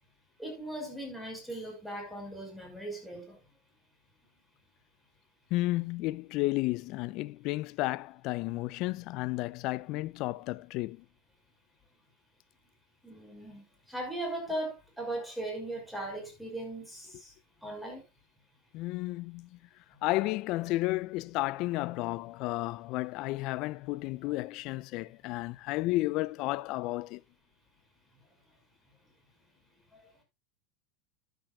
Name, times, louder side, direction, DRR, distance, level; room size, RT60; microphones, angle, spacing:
voice 1, 0.4-3.4 8.5-8.6 13.0-13.6 13.9-17.3 17.6-18.0 29.9-30.0, right 1 dB, ahead, 5.9 m, -38 dB
voice 2, 5.5-11.0 18.7-19.6 20.0-27.2, left 19 dB, 55° left, 0.5 m, -32 dB
13.0 x 9.9 x 2.4 m
hypercardioid pair, 100°, 0 cm